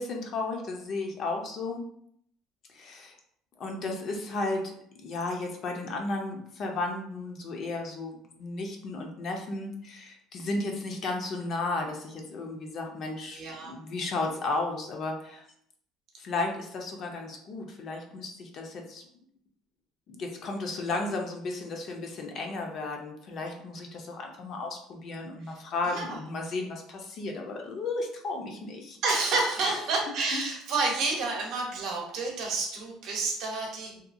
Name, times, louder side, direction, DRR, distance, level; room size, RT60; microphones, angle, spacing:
voice 1, 0.0-1.8 2.7-3.1 3.6-15.4 16.2-19.0 20.1-29.0 29.6-29.8 30.3-30.4, left 3 dB, 45° left, 2 dB, 0.5 m, -34 dB
voice 2, 13.3-13.8 25.4-25.5 25.8-26.2 29.0-34.0, right 3 dB, 60° right, 0 dB, 0.7 m, -30 dB
2.7 x 2.3 x 2.5 m, 0.69 s
cardioid pair, 145°, 0 cm